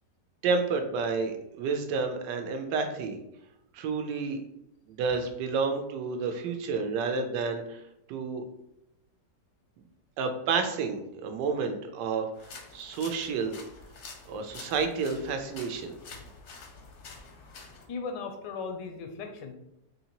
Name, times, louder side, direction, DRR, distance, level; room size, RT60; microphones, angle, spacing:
voice 1, 0.4-3.2 3.7-4.4 4.9-7.8 8.1-8.4 10.2-12.3 12.7-13.6 14.3-16.0, right 4 dB, 80° right, 6 dB, 1.2 m, -30 dB
sound 1, 12.3-17.9, left 4 dB, 65° left, 0.7 m, -48 dB
voice 2, 17.9-19.5, left 4 dB, 90° left, 5 dB, 1.3 m, -38 dB
4.1 x 2.7 x 2.9 m, 0.81 s
omnidirectional pair, 1.9 m